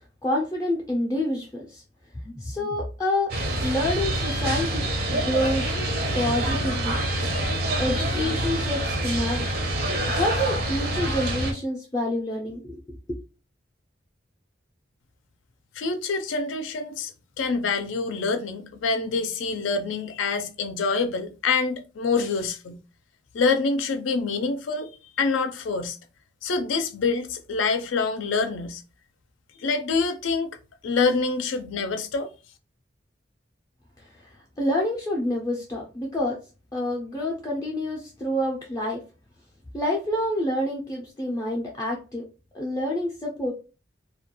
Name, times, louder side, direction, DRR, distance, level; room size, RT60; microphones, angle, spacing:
voice 1, 0.2-1.8 2.1-3.3 3.6-5.7 6.1-7.0 7.8-9.5 10.1-13.2 34.0-36.4 36.7-39.0 39.7-42.2 42.5-43.5, left 1 dB, 20° left, 0.3 m, -28 dB
sound 1, 3.3-11.5, right 1 dB, 50° right, 0.5 m, -26 dB
voice 2, 15.8-17.1 17.4-22.8 23.3-24.9 25.2-26.0 26.4-28.8 29.6-30.6 30.8-32.3, left 4 dB, 90° left, 0.4 m, -26 dB
2.2 x 2.2 x 2.9 m
head